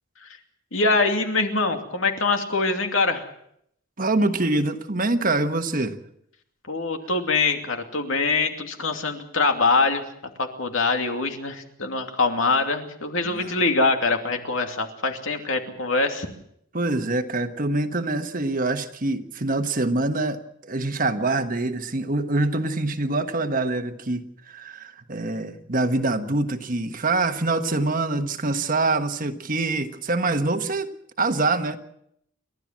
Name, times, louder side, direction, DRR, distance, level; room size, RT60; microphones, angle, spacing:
voice 1, 0.7-3.3 6.7-10.0 10.4-16.3, left 3 dB, 70° left, 5 dB, 2.7 m, -24 dB
voice 2, 4.0-6.0 13.2-13.6 16.7-30.9 31.2-31.8, right 2 dB, 40° right, 8 dB, 1.4 m, -25 dB
29.5 x 13.0 x 7.5 m, 0.73 s
head